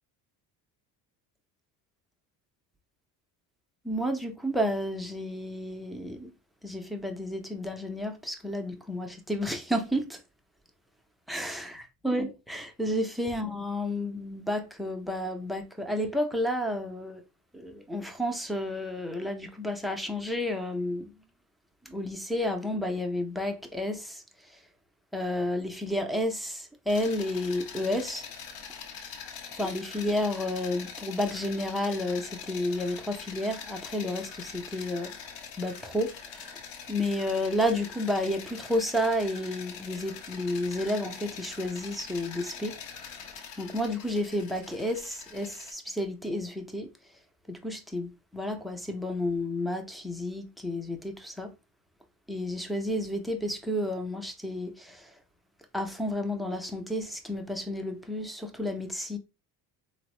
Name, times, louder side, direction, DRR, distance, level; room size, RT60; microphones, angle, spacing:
voice 1, 3.8-6.3 6.6-10.2 11.3-17.2 17.5-21.1 21.8-24.6 25.1-28.3 29.5-35.3 35.6-36.6 36.9-42.8 43.6-46.9 47.5-51.5 52.3-55.2 55.7-59.2, left 1 dB, ahead, 0.4 m, -31 dB
sound 1, 26.9-45.7, left 6 dB, 70° left, 0.7 m, -43 dB
3.4 x 2.0 x 2.9 m
supercardioid pair, 85°, 46 cm